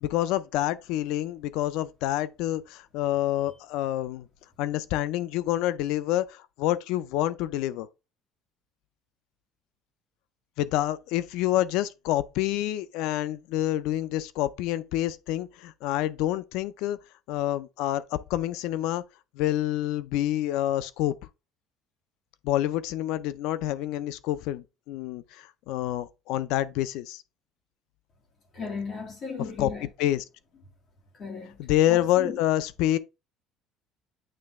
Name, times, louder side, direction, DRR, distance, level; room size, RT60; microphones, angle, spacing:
voice 1, 0.0-4.3 4.6-7.9 10.6-17.0 17.3-19.0 19.4-21.1 22.4-27.2 29.6-29.7 30.0-30.2 31.6-33.0, left 13 dB, 75° left, 0.5 m, -27 dB
voice 2, 28.5-29.9 31.2-31.6 31.9-32.4, left 5 dB, 35° left, 2.2 m, -35 dB
8.8 x 3.2 x 3.6 m
cardioid pair, 160°, 0 cm